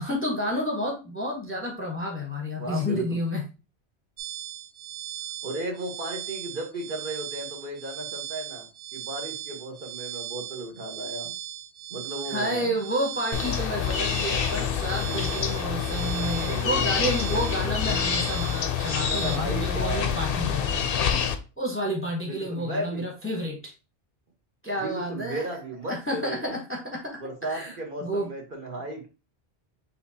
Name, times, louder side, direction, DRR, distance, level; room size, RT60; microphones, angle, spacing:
voice 1, 0.0-3.4 12.3-20.9 21.6-23.7 24.6-25.5 25.9-27.7 28.0-28.3, equal, 15° left, 0 dB, 0.8 m, -30 dB
voice 2, 2.5-3.2 5.4-11.3 11.9-12.7 14.9-15.0 16.4-17.8 19.1-20.2 22.2-23.1 24.8-26.6 27.2-29.1, right 2 dB, 50° right, 1 dB, 1.2 m, -35 dB
sound 1, 4.2-19.4, right 12 dB, 90° right, 0.9 m, -38 dB
sound 2, 13.3-21.3, left 8 dB, 65° left, 0.7 m, -27 dB
6.4 x 2.7 x 2.7 m, 0.31 s
omnidirectional pair, 1.1 m